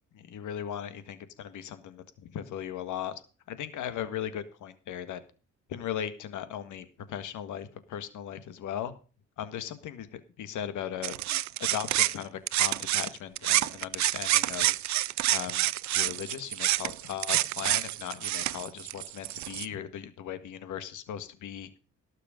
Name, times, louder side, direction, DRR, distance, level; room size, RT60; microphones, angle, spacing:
voice 1, 0.1-1.6 2.2-3.1 3.5-5.2 5.7-8.9 9.4-11.1 11.6-14.7 15.3-21.7, left 10 dB, 80° left, 11 dB, 1.8 m, -37 dB
sound 1, 11.0-13.1 13.4-19.7, right 15 dB, 70° right, 0.5 m, -28 dB
18.0 x 6.6 x 5.1 m, 0.37 s
cardioid pair, 90°, 30 cm